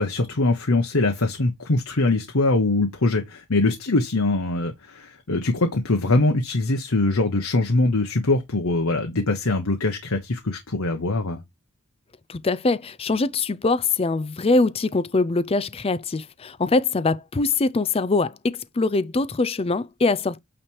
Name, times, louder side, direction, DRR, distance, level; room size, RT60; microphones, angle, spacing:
voice 1, 0.0-11.4, left 2 dB, 70° left, 1.1 m, -22 dB
voice 2, 12.3-20.4, left 3 dB, 25° left, 0.4 m, -23 dB
8.8 x 3.3 x 4.5 m
head